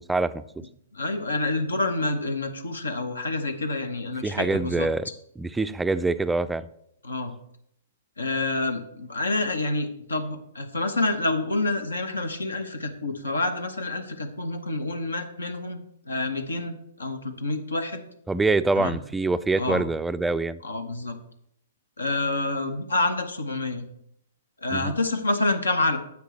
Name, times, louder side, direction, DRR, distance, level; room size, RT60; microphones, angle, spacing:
voice 1, 0.1-0.4 4.2-5.1 5.4-6.6 18.3-20.6 24.7-24.9, right 3 dB, 10° right, 13 dB, 0.3 m, -25 dB
voice 2, 0.9-4.9 7.0-7.3 8.2-18.0 18.8-19.0 19.6-19.8 20.6-21.2 22.0-23.8 24.6-26.0, left 2 dB, 90° left, 8 dB, 0.9 m, -28 dB
9.6 x 7.1 x 3.2 m, 0.74 s
hypercardioid pair, 120°, 0 cm